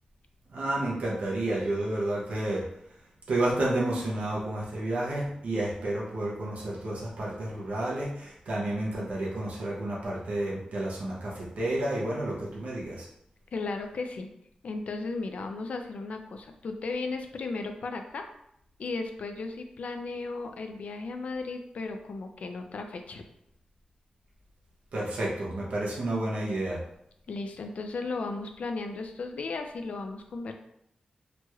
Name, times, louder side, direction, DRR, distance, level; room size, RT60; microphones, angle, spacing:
voice 1, 0.5-2.6 3.3-13.1 24.9-26.8, right 1 dB, 80° right, -5 dB, 0.7 m, -30 dB
voice 2, 13.5-14.3 14.6-18.3 18.8-23.2 27.3-30.5, left 3 dB, 65° left, 6 dB, 0.3 m, -35 dB
3.0 x 2.9 x 2.3 m, 0.75 s
wide cardioid pair, 155°, 2 cm